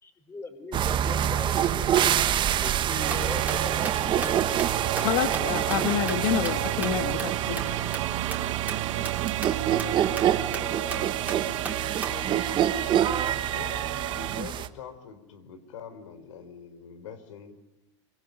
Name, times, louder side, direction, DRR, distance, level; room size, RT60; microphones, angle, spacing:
voice 1, 0.0-4.4, left 3 dB, 15° left, 9 dB, 4.3 m, -40 dB
sound 1, 0.7-14.7, right 10 dB, 30° right, 1.5 m, -27 dB
sound 2, 2.8-12.3, right 3 dB, 10° right, 3.5 m, -39 dB
sound 3, 3.0-14.4, right 15 dB, 75° right, 1.0 m, -32 dB
voice 2, 5.0-7.6, left 9 dB, 60° left, 6 dB, 2.4 m, -28 dB
voice 3, 6.1-6.8 7.6-7.9 9.5-12.7 13.5-17.5, left 7 dB, 85° left, 11 dB, 4.3 m, -44 dB
25.5 x 25.0 x 9.4 m, 0.91 s
supercardioid pair, 135°, 16 cm